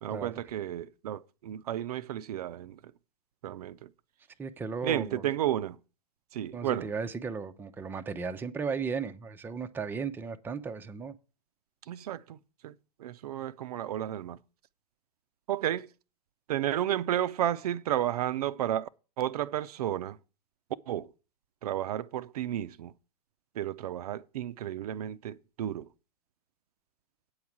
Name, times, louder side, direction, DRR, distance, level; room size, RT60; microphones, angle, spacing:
voice 1, 0.0-2.8 3.4-3.9 4.8-5.8 6.3-6.9 11.9-12.4 12.6-14.4 15.5-15.9 16.5-18.9 19.2-20.2 20.9-21.1 21.6-22.9 23.6-25.9, right 11 dB, 65° right, 0.5 m, -32 dB
voice 2, 4.4-5.2 6.5-11.1, right 5 dB, 10° right, 0.5 m, -35 dB
8.7 x 4.8 x 7.1 m
hypercardioid pair, 115°, 21 cm